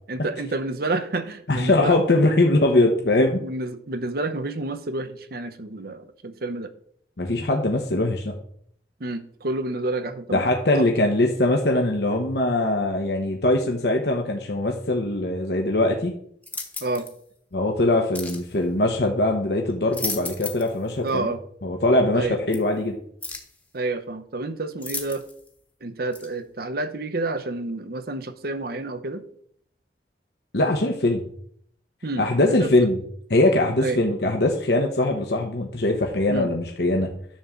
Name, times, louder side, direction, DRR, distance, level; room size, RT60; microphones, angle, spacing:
voice 1, 0.1-2.0 3.4-6.7 9.0-10.4 10.7-10.9 16.8-17.1 21.0-21.4 22.1-22.4 23.7-25.2 25.8-29.2 32.0-32.9 33.8-34.0 36.3-36.5, right 2 dB, 60° right, 10 dB, 0.8 m, -29 dB
voice 2, 1.5-3.4 7.2-8.3 10.3-16.1 17.5-21.3 21.6-23.0 30.5-31.2 32.2-33.0 33.3-37.1, left 2 dB, 65° left, 2 dB, 1.1 m, -21 dB
sound 1, 16.4-17.1 18.1-18.5 19.7-20.8 21.1-21.2 22.5-22.6 23.2-23.6 24.8-25.5 26.1-26.3, left 3 dB, 10° left, 1.1 m, -34 dB
10.0 x 3.8 x 7.1 m, 0.64 s
head